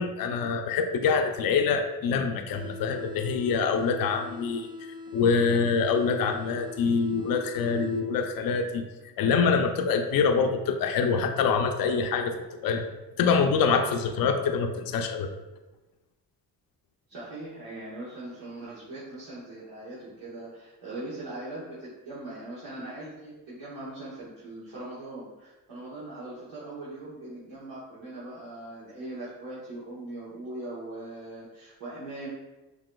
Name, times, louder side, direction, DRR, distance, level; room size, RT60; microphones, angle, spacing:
voice 1, 0.0-4.7 5.1-8.8 9.2-12.3 12.6-12.8 13.2-15.3, left 5 dB, 60° left, 5 dB, 0.6 m, -25 dB
sound 1, 2.5-8.5, left 3 dB, 10° right, 0.9 m, -43 dB
voice 2, 17.1-32.3, right 2 dB, 80° right, -10 dB, 1.4 m, -40 dB
6.1 x 2.8 x 2.3 m, 1.1 s
supercardioid pair, 55°, 40 cm